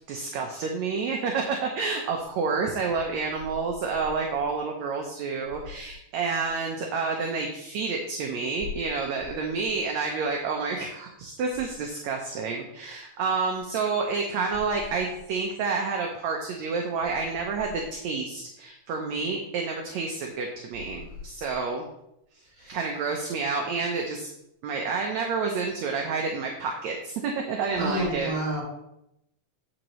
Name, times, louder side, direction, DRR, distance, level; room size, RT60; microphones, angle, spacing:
voice 1, 0.1-21.9 22.7-24.3 24.6-28.3, right 4 dB, 70° right, 1 dB, 1.8 m, -29 dB
voice 2, 27.8-28.6, right 1 dB, 10° right, -7 dB, 3.1 m, -29 dB
8.9 x 7.5 x 3.1 m, 0.82 s
omnidirectional pair, 3.9 m